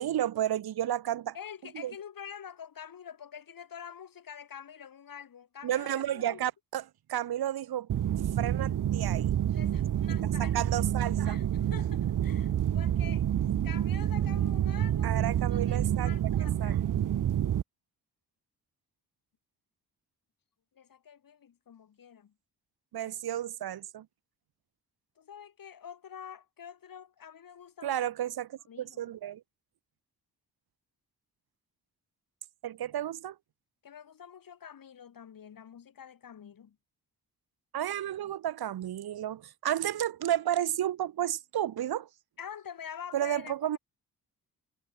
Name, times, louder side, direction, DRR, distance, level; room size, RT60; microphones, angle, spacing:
voice 1, 0.0-1.3 1.8-1.9 5.6-7.9 8.4-9.3 10.2-11.4 15.0-16.1 16.6-16.8 22.9-24.1 27.8-29.4 32.6-33.3 37.7-42.1 43.1-43.8, right 11 dB, 85° right, 1.5 m, -32 dB
voice 2, 1.3-6.4 9.5-10.6 11.2-13.2 13.6-16.8 20.8-22.3 25.2-28.0 28.7-29.0 33.8-36.8 42.4-43.8, left 8 dB, 65° left, 6.3 m, -47 dB
sound 1, 7.9-17.6, right 10 dB, 60° right, 0.8 m, -28 dB
wide cardioid pair, 125°, 36 cm